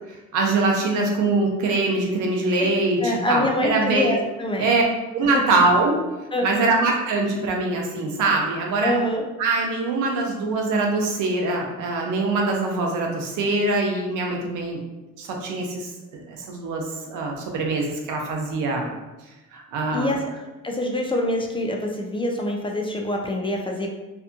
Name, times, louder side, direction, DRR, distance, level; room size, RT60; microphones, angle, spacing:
voice 1, 0.1-4.1 4.6-4.8 5.1-6.0 6.4-8.9 9.4-14.8 15.2-18.9 19.5-20.2, right 3 dB, 90° right, 1 dB, 0.6 m, -23 dB
voice 2, 3.0-4.7 6.3-6.7 8.8-9.2 19.9-20.2 20.6-23.9, left 1 dB, 20° left, 1 dB, 0.3 m, -25 dB
2.6 x 2.2 x 2.5 m, 1.1 s
cardioid pair, 90°, 30 cm